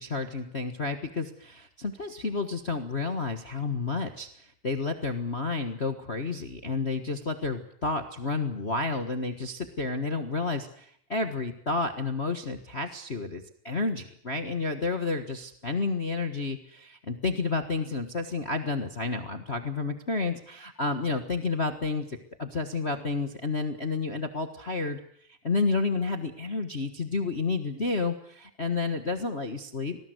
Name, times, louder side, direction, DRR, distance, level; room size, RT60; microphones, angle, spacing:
voice 1, 0.0-25.0 25.3-30.0, left 3 dB, 50° left, 7 dB, 0.7 m, -30 dB
25.5 x 19.0 x 8.0 m, 0.64 s
omnidirectional pair, 3.6 m